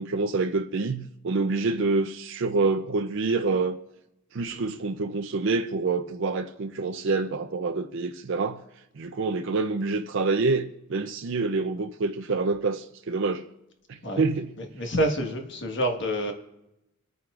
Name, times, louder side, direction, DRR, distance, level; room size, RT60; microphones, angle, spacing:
voice 1, 0.0-3.8 4.3-8.6 9.0-13.5 13.9-14.5, right 3 dB, 55° right, 0.5 m, -27 dB
voice 2, 14.6-16.3, right 1 dB, 55° left, 1.5 m, -27 dB
26.5 x 9.4 x 2.4 m
head